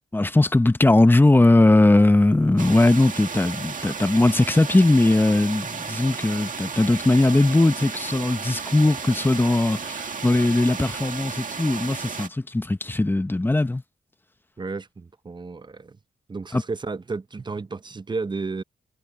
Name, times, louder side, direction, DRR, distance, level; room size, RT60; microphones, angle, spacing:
voice 1, 0.1-13.8 16.5-16.6, left 2 dB, 10° left, 0.8 m, -19 dB
sound 1, 2.6-12.3, right 5 dB, 50° right, 2.0 m, -33 dB
voice 2, 14.6-16.0 16.3-18.6, right 4 dB, 25° right, 0.7 m, -32 dB
cardioid pair, 95°, 18 cm